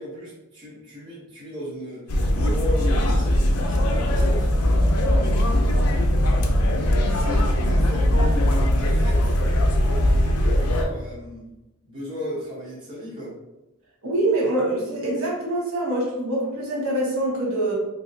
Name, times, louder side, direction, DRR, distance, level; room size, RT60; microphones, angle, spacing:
voice 1, 0.0-4.5 4.8-6.0 6.7-8.5 8.8-11.5 11.8-13.4, left 1 dB, 20° right, -7 dB, 0.8 m, -35 dB
sound 1, 2.1-10.8, equal, 85° left, 0.5 m, -20 dB
voice 2, 14.0-17.8, right 1 dB, 65° right, -3 dB, 1.0 m, -24 dB
3.1 x 2.7 x 2.6 m, 0.94 s
head